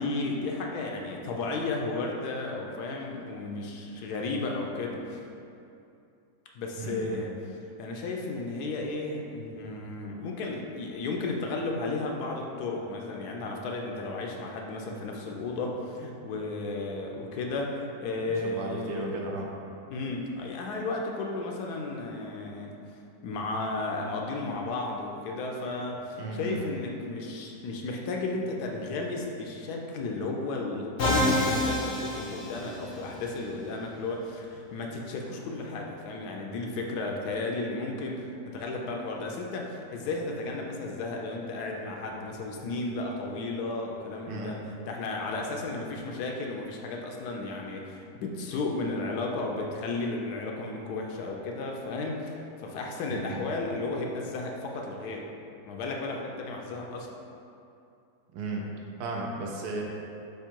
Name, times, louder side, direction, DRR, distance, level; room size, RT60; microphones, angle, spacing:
voice 1, 0.0-5.2 6.5-7.3 7.8-19.1 19.9-22.7 23.2-55.3 55.7-57.1, left 3 dB, 75° left, 0 dB, 1.1 m, -34 dB
voice 2, 6.8-7.2 18.4-19.5 26.1-26.6 44.3-44.5 53.1-53.5 58.3-58.7 59.0-59.8, right 2 dB, 75° right, -1 dB, 1.1 m, -34 dB
Musical instrument, 31.0-33.1, left 1 dB, 60° left, 0.7 m, -27 dB
3.6 x 3.2 x 4.4 m, 2.6 s
omnidirectional pair, 1.7 m